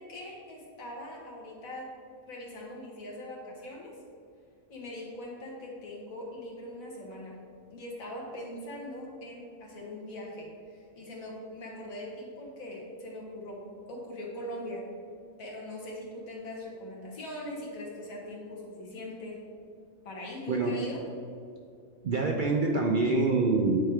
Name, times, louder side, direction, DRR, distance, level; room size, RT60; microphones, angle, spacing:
voice 1, 0.0-1.9 2.3-3.9 4.7-7.4 7.7-13.6 13.9-14.9 15.4-19.4 20.0-21.1, left 1 dB, 85° left, -3 dB, 1.8 m, -41 dB
voice 2, 22.0-23.8, right 3 dB, 60° right, 1 dB, 0.5 m, -25 dB
8.9 x 4.5 x 3.5 m, 2.4 s
omnidirectional pair, 1.4 m